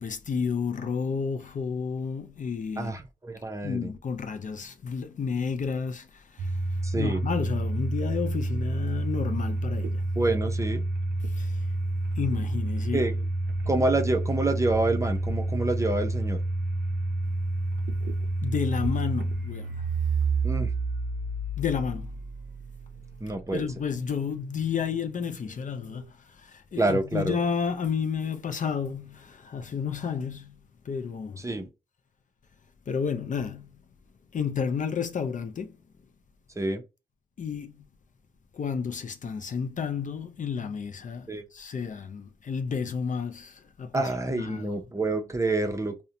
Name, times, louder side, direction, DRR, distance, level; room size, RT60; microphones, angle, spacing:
voice 1, 0.0-2.9 3.6-6.6 7.0-10.0 11.3-11.6 12.2-13.1 18.4-19.8 21.6-22.2 23.5-30.6 30.9-31.4 32.9-33.7 34.3-35.8 37.4-37.9 38.5-44.8, left 6 dB, 50° left, 0.4 m, -31 dB
voice 2, 2.8-3.9 6.8-7.2 10.2-10.8 12.9-13.2 13.7-16.4 20.4-20.7 23.2-23.7 26.8-27.4 31.4-31.7 36.6-36.8 41.3-41.4 43.9-46.0, right 2 dB, 20° right, 0.6 m, -27 dB
Domestic sounds home sounds, 6.4-23.3, right 2 dB, 90° right, 0.5 m, -29 dB
2.5 x 2.1 x 2.7 m
cardioid pair, 80°, 17 cm